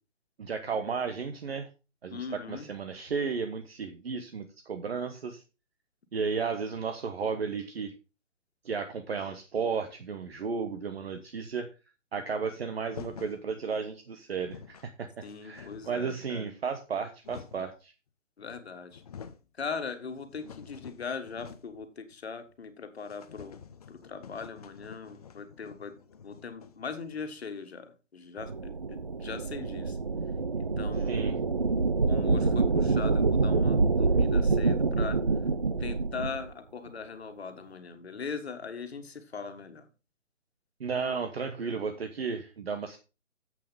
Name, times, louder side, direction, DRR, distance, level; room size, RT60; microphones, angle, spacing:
voice 1, 0.4-1.7 2.0-2.2 2.5-5.4 6.1-7.9 8.6-11.7 12.1-15.1 15.4-17.9 31.1-31.3 40.8-43.0, right 5 dB, 50° right, 7 dB, 1.2 m, -33 dB
voice 2, 2.1-2.7 15.2-16.5 18.4-19.0 19.6-23.6 23.9-25.9 26.2-30.0 30.6-31.4 32.0-35.2 35.8-39.9, left 5 dB, 55° left, 8 dB, 1.8 m, -40 dB
sound 1, 12.9-13.4 14.1-14.2 14.3-14.9 15.3-16.1 16.8-17.8 18.5-18.6 18.9-19.5 19.9-21.9 22.1-22.2 22.5-22.6 23.0-27.5, left 7 dB, 30° left, 0.7 m, -48 dB
sound 2, 28.4-36.4, right 3 dB, 35° right, 0.4 m, -26 dB
7.8 x 6.9 x 5.7 m, 0.32 s
figure-of-eight pair, 140°, 38 cm